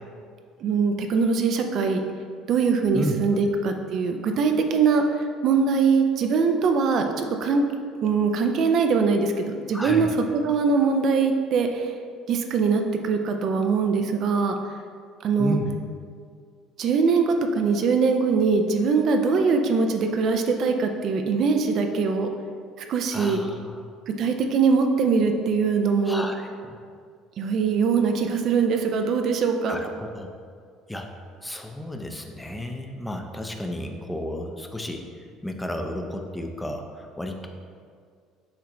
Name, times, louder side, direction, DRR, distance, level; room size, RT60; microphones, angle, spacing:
voice 1, 0.6-2.0 2.5-7.6 8.0-11.9 12.3-14.6 15.2-15.6 16.8-22.3 22.9-23.4 24.1-26.2 27.4-29.8, right 5 dB, 55° right, 5 dB, 0.4 m, -22 dB
voice 2, 2.9-3.4 9.7-10.1 15.4-15.7 23.1-23.8 26.0-26.8 29.7-30.3 30.9-31.1 31.4-37.5, equal, 10° left, 4 dB, 0.5 m, -32 dB
6.4 x 2.5 x 3.0 m, 2.1 s
hypercardioid pair, 70°, 0 cm